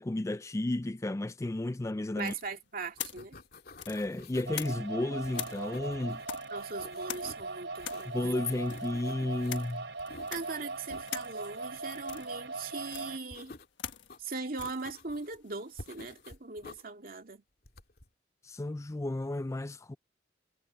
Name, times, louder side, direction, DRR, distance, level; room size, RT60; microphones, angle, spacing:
voice 1, 0.0-2.3 3.9-6.2 8.1-9.9 18.4-20.0, left 2 dB, 15° left, 0.4 m, -33 dB
sound 1, 2.2-5.0 5.3-16.3, left 10 dB, 90° left, 1.4 m, -45 dB
voice 2, 2.2-3.4 6.5-8.2 10.3-13.5 14.2-17.4, right 4 dB, 50° right, 2.5 m, -40 dB
sound 2, 2.4-2.6 2.9-4.7 5.2-6.3 6.6-7.5 7.8-9.7 10.0-11.1 13.3-14.2 14.6-15.4 15.8-16.8 17.6-18.1, left 2 dB, 55° left, 2.6 m, -50 dB
sound 3, 4.5-13.2, right 3 dB, 80° right, 3.3 m, -40 dB
head